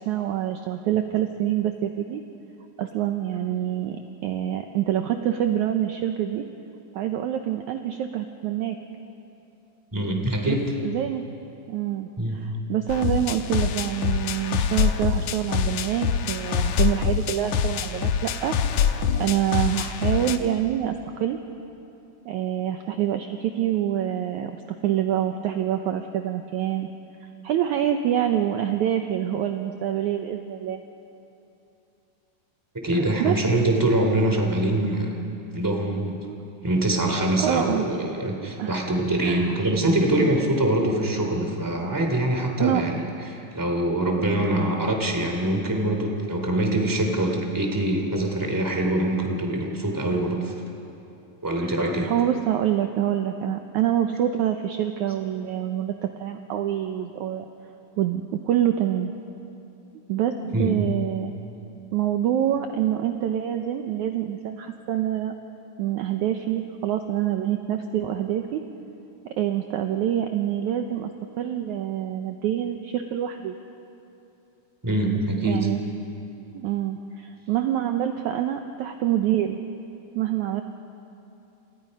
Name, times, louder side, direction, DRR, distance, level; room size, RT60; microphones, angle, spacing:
voice 1, 0.0-2.2 2.8-6.5 6.9-8.8 10.5-11.2 11.7-18.5 19.2-21.0 21.2-21.4 22.3-26.9 27.2-30.8 32.9-33.4 36.2-36.4 37.4-37.9 38.4-38.8 39.2-39.6 42.6-42.8 51.6-51.7 52.1-57.5 58.0-59.1 60.1-60.3 60.6-61.3 61.9-65.3 65.8-68.6 69.4-71.1 71.4-73.5 75.4-75.8 76.5-79.6 80.1-80.6, right 11 dB, 70° right, 6 dB, 1.9 m, -26 dB
voice 2, 9.9-10.6 12.2-12.4 32.8-35.1 35.5-36.2 36.6-42.9 43.3-50.5 51.4-52.1 60.2-60.8 74.8-75.7, right 1 dB, 5° right, 2 dB, 2.4 m, -24 dB
sound 1, 12.9-20.4, left 7 dB, 65° left, 2.0 m, -25 dB
30.0 x 28.5 x 5.4 m, 2.8 s
omnidirectional pair, 4.2 m